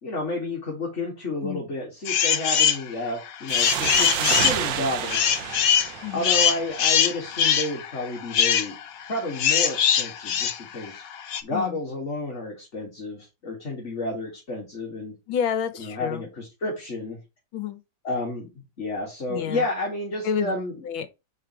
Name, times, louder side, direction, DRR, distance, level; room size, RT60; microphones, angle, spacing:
voice 1, 0.0-5.3 6.1-8.8 9.1-11.0 11.4-15.1 15.8-17.2 18.0-18.5 18.8-20.8, left 2 dB, 35° left, 2.0 m, -31 dB
voice 2, 1.4-1.7 6.0-6.3 11.5-11.8 15.3-16.3 17.5-17.8 19.3-19.6 20.2-20.5 20.9-21.1, left 7 dB, 85° left, 1.7 m, -29 dB
sound 1, 2.0-2.8 3.3-11.4, left 8 dB, 60° left, 1.0 m, -22 dB
sound 2, 3.5-6.9, right 11 dB, 75° right, 1.3 m, -29 dB
4.9 x 4.2 x 5.9 m
omnidirectional pair, 2.1 m